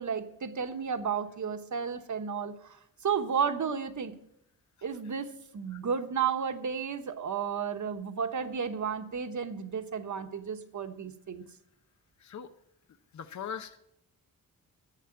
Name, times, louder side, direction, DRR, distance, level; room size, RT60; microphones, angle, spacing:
voice 1, 0.0-4.1 4.8-11.4, right 6 dB, 55° right, 7 dB, 1.1 m, -33 dB
voice 2, 13.1-13.8, left 7 dB, 50° left, 9 dB, 0.7 m, -40 dB
11.0 x 8.3 x 8.8 m, 0.78 s
wide cardioid pair, 160°, 36 cm